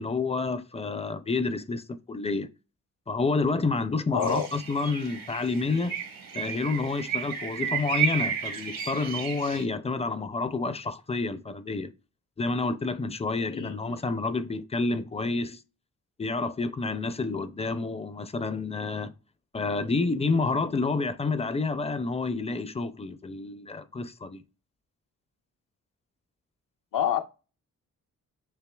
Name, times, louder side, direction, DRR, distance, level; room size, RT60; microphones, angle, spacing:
voice 1, 0.0-2.5 3.1-5.9 6.3-11.9 12.4-15.6 16.2-19.1 19.5-24.4, left 3 dB, 20° left, 0.5 m, -29 dB
voice 2, 4.1-4.5 13.5-14.0 26.9-27.2, left 8 dB, 75° left, 0.7 m, -27 dB
sound 1, 4.2-9.6, right 7 dB, 85° right, 1.3 m, -32 dB
6.8 x 2.8 x 2.3 m
cardioid pair, 80°, 33 cm